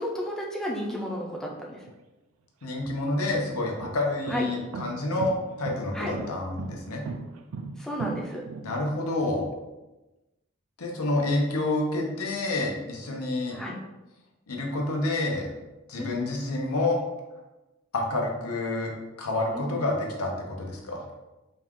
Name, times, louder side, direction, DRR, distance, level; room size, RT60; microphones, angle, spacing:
voice 1, 0.0-1.8 4.3-4.4 5.9-6.1 7.8-8.5 13.5-13.8 16.0-16.2 19.5-19.7, equal, 5° left, -3 dB, 0.5 m, -33 dB
sound 1, 1.8-1.9 2.6-9.1, right 4 dB, 70° right, 0.4 m, -37 dB
voice 2, 2.6-7.0 8.6-9.5 10.8-13.6 14.5-15.5 15.9-17.0 17.9-18.9 19.2-21.0, left 2 dB, 85° left, 0 dB, 0.8 m, -28 dB
4.1 x 2.4 x 3.6 m, 1.1 s
head